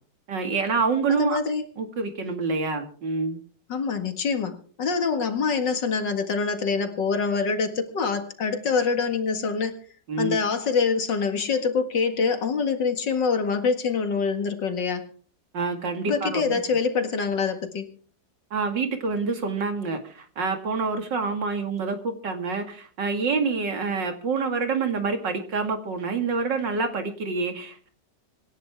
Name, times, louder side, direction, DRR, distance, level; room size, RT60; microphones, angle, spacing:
voice 1, 0.3-1.4 1.8-3.4 10.1-10.4 15.5-16.6 18.5-27.9, right 4 dB, 80° right, 6 dB, 2.8 m, -27 dB
voice 2, 1.1-1.6 3.7-9.8 10.2-15.1 16.1-17.9, left 5 dB, 85° left, 7 dB, 2.6 m, -25 dB
26.0 x 11.0 x 3.6 m, 0.43 s
omnidirectional pair, 1.9 m